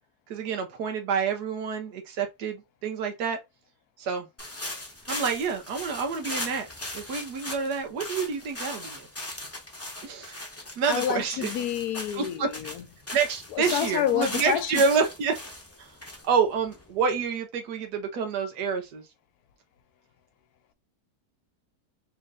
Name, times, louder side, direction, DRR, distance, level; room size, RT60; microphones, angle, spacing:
voice 1, 0.3-3.4 4.0-4.3 5.1-6.7 6.9-9.1 10.0-10.4 10.8-11.5 12.1-12.5 13.1-15.4 15.8-15.9 16.3-19.0, right 5 dB, 90° right, 1.4 m, -28 dB
sound 1, 4.4-17.2, left 1 dB, 15° left, 0.7 m, -38 dB
voice 2, 10.9-12.8 13.5-14.8, left 10 dB, 75° left, 1.1 m, -28 dB
4.3 x 2.6 x 3.6 m
omnidirectional pair, 1.7 m